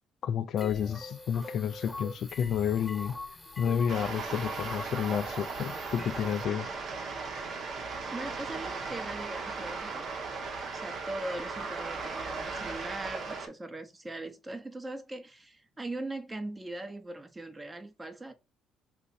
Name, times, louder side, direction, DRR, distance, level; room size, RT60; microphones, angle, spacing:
voice 1, 0.2-3.2 3.6-6.7, left 8 dB, 60° left, 0.3 m, -30 dB
sound 1, 0.6-6.4, left 2 dB, 20° left, 0.9 m, -43 dB
sound 2, 3.9-13.5, right 4 dB, 55° right, 1.0 m, -37 dB
voice 2, 8.1-10.1 10.7-18.3, right 2 dB, 20° right, 0.9 m, -40 dB
3.3 x 2.5 x 4.0 m
supercardioid pair, 65°, 0 cm